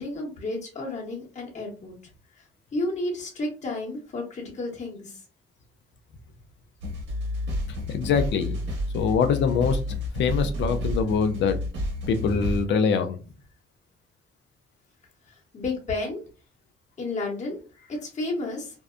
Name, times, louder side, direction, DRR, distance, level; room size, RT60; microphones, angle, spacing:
voice 1, 0.0-1.9 2.7-5.2 15.5-16.2 17.0-18.8, left 2 dB, 35° left, -2 dB, 1.0 m, -32 dB
sound 1, 6.8-12.7, left 1 dB, 65° right, 1.2 m, -30 dB
voice 2, 7.9-8.6 8.9-9.8 10.2-11.6 12.1-13.2, left 6 dB, 65° left, 9 dB, 0.5 m, -23 dB
2.6 x 2.1 x 2.4 m, 0.34 s
cardioid pair, 90°, 20 cm